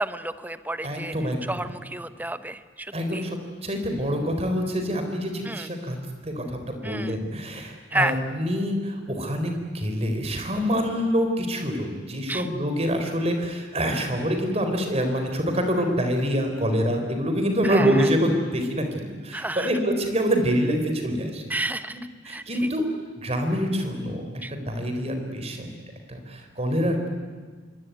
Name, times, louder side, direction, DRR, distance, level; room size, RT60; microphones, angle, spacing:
voice 1, 0.0-1.1 1.5-3.3 5.4-5.7 6.8-7.2 7.9-8.1 12.3-12.5 17.6-18.1 19.3-19.7 21.5-22.0 22.2-22.4 24.4-24.5, right 1 dB, 10° right, 11 dB, 0.9 m, -30 dB
voice 2, 0.8-1.7 2.9-6.0 6.2-21.4 22.2-22.8 23.2-24.2 24.5-25.8 26.1-27.1, equal, 35° right, 5 dB, 4.2 m, -26 dB
26.0 x 23.5 x 9.5 m, 1.5 s
head